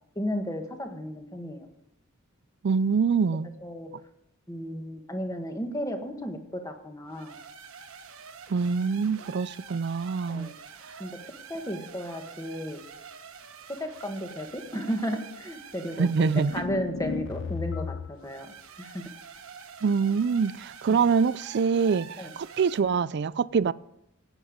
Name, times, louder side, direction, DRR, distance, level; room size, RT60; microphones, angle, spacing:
voice 1, 0.1-1.7 3.6-3.9 4.5-7.3 10.3-10.5 11.0-11.1 11.5-12.8 13.7-19.1 22.2-22.3, equal, 15° left, 1.4 m, -34 dB
voice 2, 2.6-3.5 8.5-10.5 16.0-16.6 19.8-23.7, right 5 dB, 50° right, 0.4 m, -25 dB
sound 1, 7.1-16.7 18.1-22.8, right 6 dB, 70° right, 1.3 m, -46 dB
sound 2, 16.4-18.3, left 5 dB, 55° left, 0.4 m, -34 dB
16.5 x 9.0 x 5.1 m
head